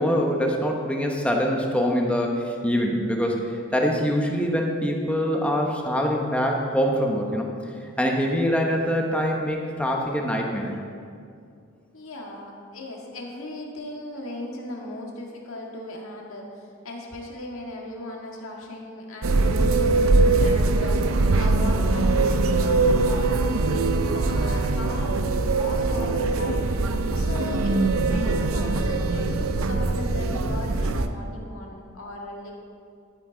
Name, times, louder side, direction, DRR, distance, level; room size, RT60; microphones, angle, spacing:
voice 1, 0.0-3.4 3.7-7.5 8.0-10.7 19.6-19.7 30.3-30.6, equal, 5° left, 0 dB, 1.1 m, -24 dB
voice 2, 11.9-26.7 27.1-32.5, left 1 dB, 75° left, -1 dB, 1.8 m, -37 dB
sound 1, 19.2-31.1, right 3 dB, 80° right, 0.6 m, -22 dB
12.0 x 9.4 x 4.0 m, 2.3 s
head